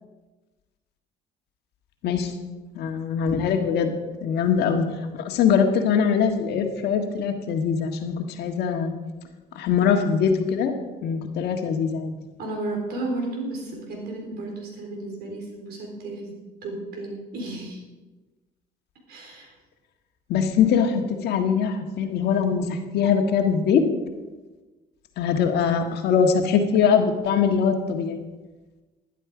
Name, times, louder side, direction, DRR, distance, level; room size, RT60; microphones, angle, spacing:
voice 1, 2.7-3.9 4.2-4.8 5.1-8.9 9.5-10.7 11.0-12.1 20.3-23.8 25.2-28.2, left 7 dB, 75° left, 5 dB, 1.6 m, -22 dB
voice 2, 12.4-17.8 19.1-19.5, right 2 dB, 70° right, 1 dB, 4.0 m, -33 dB
12.0 x 11.0 x 4.9 m, 1.2 s
cardioid pair, 110°, 17 cm